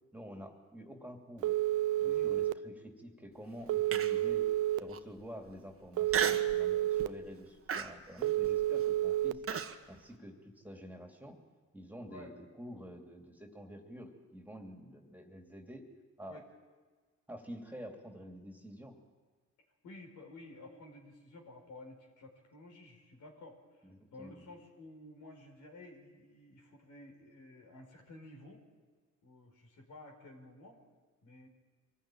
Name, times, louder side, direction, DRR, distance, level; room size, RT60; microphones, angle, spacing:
voice 1, 0.1-1.5 2.0-4.5 4.8-9.4 9.9-11.4 11.7-15.8 16.2-16.4 17.3-19.0 23.8-24.4, equal, 5° right, 3 dB, 2.8 m, -49 dB
Telephone, 1.4-2.5 3.7-4.8 6.0-7.1 8.2-9.3, right 14 dB, 80° right, 0.6 m, -30 dB
voice 2, 2.0-2.3 3.6-3.7 12.1-12.3 16.3-16.4 19.8-28.6 29.2-30.8 31.2-31.5, left 2 dB, 75° left, 2 dB, 4.9 m, -53 dB
Human voice, 3.9-4.3 4.9-5.0 6.1-6.6 7.0-7.3 7.7-9.8, right 7 dB, 45° right, 1.4 m, -34 dB
23.5 x 15.0 x 9.2 m, 1.4 s
cardioid pair, 90°, 30 cm